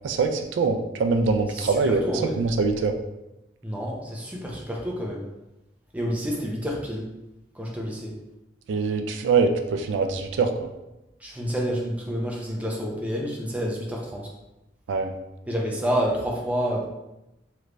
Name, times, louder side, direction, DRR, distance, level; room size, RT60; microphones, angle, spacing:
voice 1, 0.0-2.0 2.4-2.9 8.7-10.7 14.9-15.1, right 4 dB, 80° right, 5 dB, 0.3 m, -23 dB
voice 2, 1.5-2.4 3.6-5.2 5.9-7.1 7.5-8.1 11.2-14.3 15.5-16.8, equal, 10° right, -2 dB, 0.5 m, -29 dB
3.2 x 3.0 x 2.5 m, 0.96 s
head